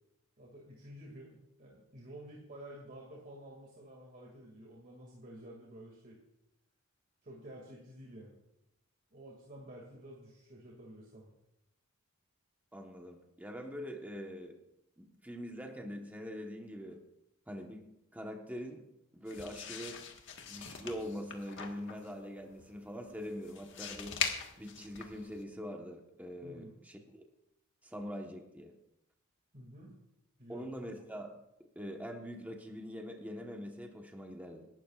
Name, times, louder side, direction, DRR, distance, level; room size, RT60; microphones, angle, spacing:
voice 1, 0.4-6.2 7.2-8.4 9.1-11.3 26.4-26.7 29.5-29.9 30.4-30.7, right 1 dB, 40° right, -2 dB, 2.2 m, -51 dB
voice 2, 12.7-14.6 15.0-17.0 17.5-18.9 19.1-20.0 20.5-24.2 24.6-27.2 27.8-28.7 30.5-31.3 31.7-34.7, equal, 5° right, 2 dB, 1.1 m, -43 dB
sound 1, 19.3-25.4, left 7 dB, 60° left, 1.5 m, -42 dB
26.5 x 12.0 x 2.4 m, 0.86 s
head